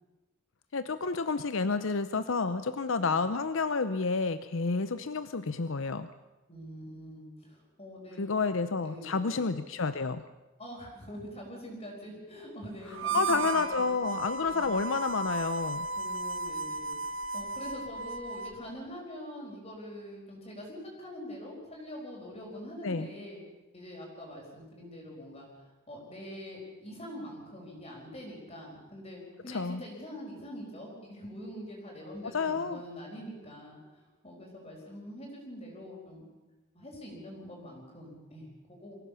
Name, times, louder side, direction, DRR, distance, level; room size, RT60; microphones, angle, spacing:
voice 1, 0.7-6.1 8.2-10.2 13.1-15.9 22.8-23.1 29.5-29.8 32.2-32.8, left 4 dB, 65° left, 12 dB, 0.7 m, -30 dB
voice 2, 6.5-8.2 8.8-9.5 10.6-14.0 14.4-14.8 16.0-23.4 23.7-36.3 36.7-39.0, equal, 30° left, -1 dB, 4.8 m, -44 dB
Harmonica, 12.9-18.6, right 4 dB, 65° right, 1.0 m, -35 dB
24.5 x 16.0 x 7.0 m, 1.1 s
head